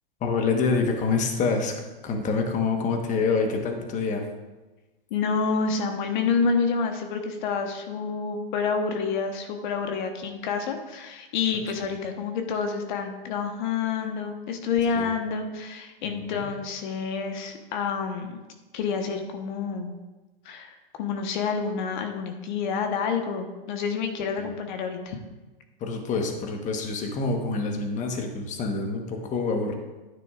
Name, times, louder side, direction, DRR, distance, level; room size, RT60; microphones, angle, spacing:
voice 1, 0.2-1.7 2.0-4.2 14.9-15.1 16.0-16.5 25.8-29.7, left 4 dB, 25° left, 4 dB, 1.3 m, -26 dB
voice 2, 5.1-18.4 18.7-19.9 20.4-25.2, left 5 dB, 55° left, 5 dB, 1.2 m, -28 dB
10.5 x 9.5 x 2.5 m, 1.2 s
hypercardioid pair, 125°, 29 cm